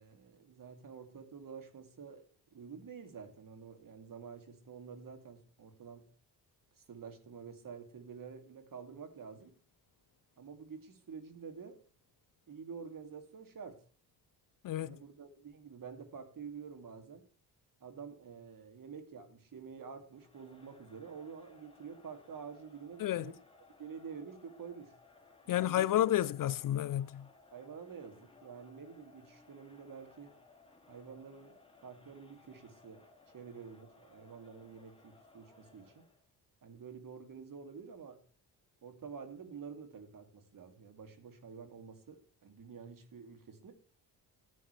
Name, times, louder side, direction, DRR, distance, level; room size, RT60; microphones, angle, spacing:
voice 1, 0.0-2.2 2.5-6.1 6.8-9.5 10.4-11.8 12.5-13.8 14.8-17.2 17.8-23.3 23.8-24.9 25.4-26.3 27.5-30.4 30.9-31.5 31.8-33.0 33.3-36.1 36.6-38.2 38.8-43.7, right 6 dB, 50° right, 2.5 m, -49 dB
Crowd, 20.1-36.3, left 3 dB, 15° left, 2.4 m, -62 dB
voice 2, 25.5-27.3, left 12 dB, 55° left, 0.4 m, -30 dB
14.5 x 9.1 x 3.2 m
cardioid pair, 90°, 41 cm